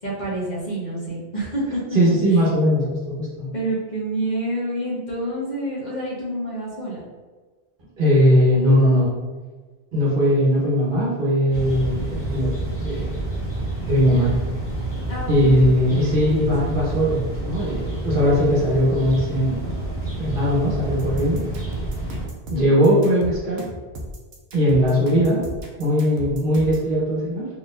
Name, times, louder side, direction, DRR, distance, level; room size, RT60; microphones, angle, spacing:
voice 1, 0.0-2.0 2.3-2.4 3.5-7.0 15.1-15.7 22.5-23.0, right 1 dB, 45° left, -6 dB, 1.2 m, -28 dB
voice 2, 1.9-3.5 8.0-9.1 9.9-12.5 12.8-13.2 13.8-14.3 15.3-19.8 20.2-21.4 22.5-23.6 24.5-25.4 25.8-27.5, equal, 60° right, -5 dB, 1.2 m, -19 dB
sound 1, 11.5-22.3, right 2 dB, 15° left, 1.2 m, -29 dB
sound 2, 21.0-26.9, equal, 75° right, 0.9 m, -35 dB
4.1 x 3.0 x 2.5 m, 1.3 s
omnidirectional pair, 1.0 m